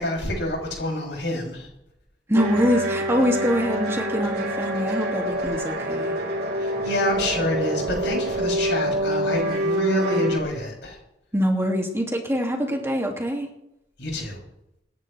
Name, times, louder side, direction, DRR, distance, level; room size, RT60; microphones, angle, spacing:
voice 1, 0.0-1.7 6.6-11.0 14.0-14.4, left 1 dB, 90° left, -2 dB, 7.2 m, -27 dB
voice 2, 2.3-6.2 11.3-13.5, equal, 15° right, 1 dB, 2.4 m, -24 dB
sound 1, 2.3-10.4, equal, 65° right, 3.3 m, -26 dB
26.0 x 11.0 x 3.4 m, 0.84 s
head